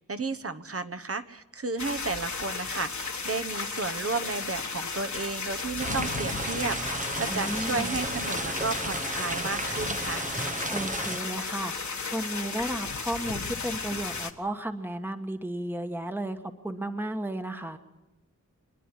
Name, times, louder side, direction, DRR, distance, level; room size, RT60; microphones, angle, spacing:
voice 1, 0.0-10.3, right 4 dB, 45° right, 11 dB, 1.2 m, -33 dB
sound 1, 1.8-14.3, left 4 dB, 60° left, 1.5 m, -34 dB
sound 2, 5.8-11.2, right 2 dB, 25° right, 0.9 m, -34 dB
voice 2, 7.3-7.9 10.7-11.7 12.1-16.4 16.6-17.8, right 1 dB, 5° right, 6 dB, 1.3 m, -33 dB
26.5 x 10.0 x 9.8 m, 1.0 s
wide cardioid pair, 50°, 32 cm